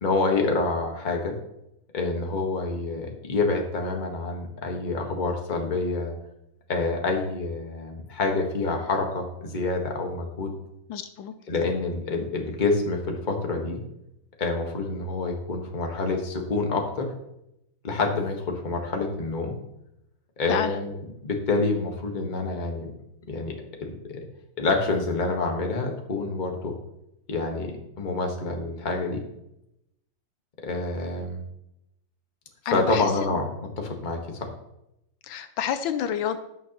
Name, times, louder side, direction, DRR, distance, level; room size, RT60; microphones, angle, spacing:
voice 1, 0.0-1.3 1.9-6.1 6.7-10.5 11.5-13.8 14.4-17.1 17.8-19.6 20.4-21.0 21.2-22.9 23.3-23.5 23.8-24.2 24.6-26.7 27.3-29.2 30.6-31.4 32.6-33.5 33.8-34.5, left 3 dB, 25° left, 2 dB, 1.3 m, -27 dB
voice 2, 10.9-11.3 20.5-20.8 32.7-33.3 35.2-36.4, left 9 dB, 80° left, 10 dB, 1.4 m, -29 dB
16.5 x 6.4 x 3.0 m, 0.84 s
omnidirectional pair, 2.1 m